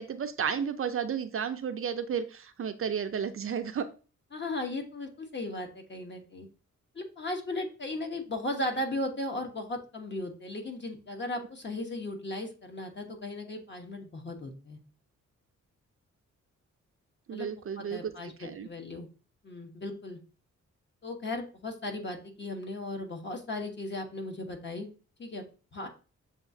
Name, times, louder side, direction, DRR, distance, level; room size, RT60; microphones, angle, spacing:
voice 1, 0.0-3.9 11.4-11.5 17.3-18.7, right 7 dB, 45° right, 8 dB, 0.5 m, -33 dB
voice 2, 4.3-6.5 6.9-14.8 17.3-17.5 17.8-19.1 19.4-20.2 21.0-24.9 25.2-25.4 25.7-25.9, left 1 dB, 35° left, 3 dB, 1.0 m, -36 dB
7.0 x 2.4 x 2.6 m, 0.35 s
cardioid pair, 85°, 30 cm